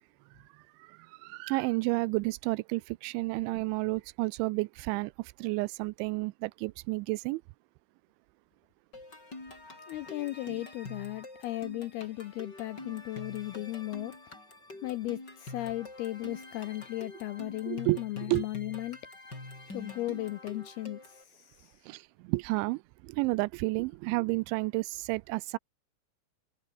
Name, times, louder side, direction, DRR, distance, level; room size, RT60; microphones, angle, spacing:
voice 1, 0.8-7.4 17.7-18.0 18.3-18.5 21.9-25.6, right 24 dB, 85° right, 2.8 m, -31 dB
sound 1, 8.9-21.2, left 2 dB, 20° left, 7.2 m, -46 dB
voice 2, 9.9-14.2 14.8-19.0 19.7-21.8, left 16 dB, 80° left, 2.3 m, -36 dB
omnidirectional pair, 5.5 m